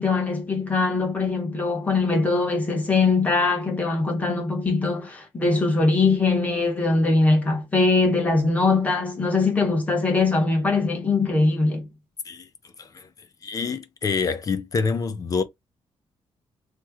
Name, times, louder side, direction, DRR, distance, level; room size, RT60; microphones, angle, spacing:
voice 1, 0.0-11.9, left 3 dB, 15° left, 1.1 m, -22 dB
voice 2, 13.4-15.4, left 5 dB, 35° left, 0.5 m, -26 dB
3.1 x 2.1 x 3.4 m
wide cardioid pair, 165°, 11 cm